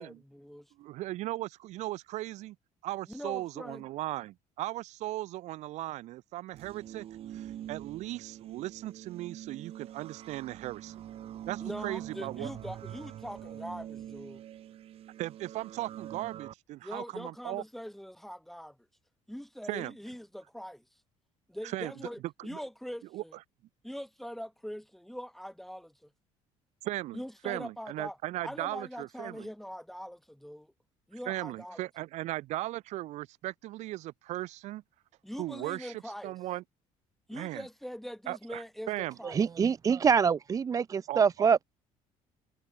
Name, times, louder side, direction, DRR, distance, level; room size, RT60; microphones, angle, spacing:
voice 1, 0.0-0.7 3.1-3.8 11.6-14.4 16.8-18.8 19.3-20.8 21.5-23.3 23.8-26.1 27.1-28.2 28.4-30.7 31.1-31.8 35.2-36.4 37.3-39.4, equal, ahead, 2.2 m, -42 dB
voice 2, 0.8-2.6 2.8-7.0 7.3-11.0 11.5-12.5 15.2-17.6 19.7-19.9 21.6-21.9 22.4-22.6 23.1-23.2 26.8-29.5 31.3-34.8 35.4-36.6 37.3-37.7 38.3-39.2 41.1-41.5, right 16 dB, 70° right, 5.6 m, -37 dB
sound 1, 6.5-16.5, right 11 dB, 50° right, 4.2 m, -44 dB
voice 3, 39.2-41.6, right 6 dB, 30° right, 0.7 m, -25 dB
cardioid pair, 125°, 12 cm